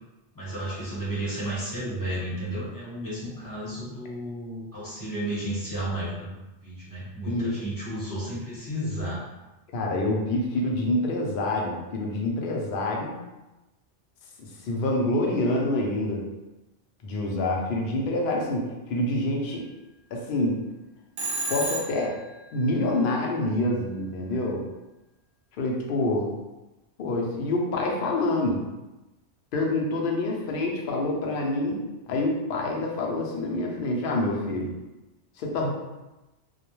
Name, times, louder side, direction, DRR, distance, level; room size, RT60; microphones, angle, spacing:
voice 1, 0.3-9.2, right 1 dB, 20° left, -9 dB, 0.8 m, -32 dB
voice 2, 9.7-13.2 14.4-16.3 17.0-19.6 20.1-20.6 21.5-22.2 22.5-24.7 25.6-26.3 27.0-28.7 29.5-31.8 32.1-34.7 35.4-35.7, left 2 dB, 60° left, -1 dB, 0.6 m, -27 dB
Telephone, 21.2-22.3, right 2 dB, 75° right, 0.8 m, -30 dB
2.3 x 2.1 x 2.9 m, 1.0 s
omnidirectional pair, 1.2 m